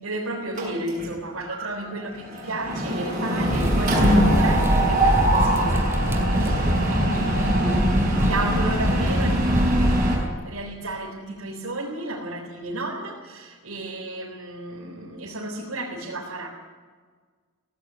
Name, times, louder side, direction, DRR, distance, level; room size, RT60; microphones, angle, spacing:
voice 1, 0.0-16.5, right 2 dB, 80° right, -3 dB, 3.9 m, -33 dB
Mechanisms, 0.6-1.2 1.5-1.7 2.0-10.1, right 1 dB, 35° right, 6.5 m, -23 dB
sound 1, 3.5-10.3, equal, 10° right, 2.3 m, -24 dB
17.5 x 17.0 x 9.4 m, 1.5 s
head